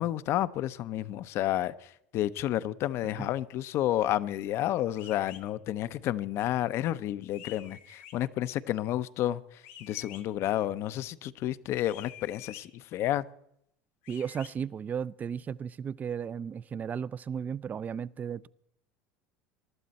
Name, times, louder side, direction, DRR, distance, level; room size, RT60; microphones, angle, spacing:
voice 1, 0.0-13.3, left 13 dB, 55° left, 0.6 m, -31 dB
sound 1, 5.0-5.4 7.3-8.2 9.6-10.2 11.8-12.6 14.0-14.5, left 11 dB, 80° left, 1.7 m, -48 dB
voice 2, 14.1-18.5, right 7 dB, 30° right, 0.4 m, -35 dB
22.0 x 12.0 x 4.2 m
supercardioid pair, 95°, 5 cm